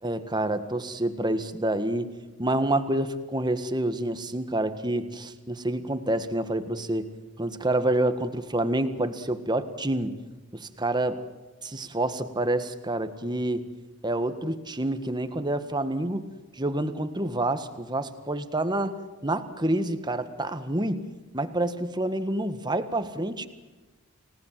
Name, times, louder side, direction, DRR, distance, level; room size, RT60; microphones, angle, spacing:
voice 1, 0.0-2.1 2.4-7.1 7.4-10.2 10.5-11.2 11.6-13.6 14.0-21.0 21.3-23.5, right 1 dB, 20° right, 10 dB, 1.6 m, -28 dB
30.0 x 18.5 x 7.5 m, 1.2 s
head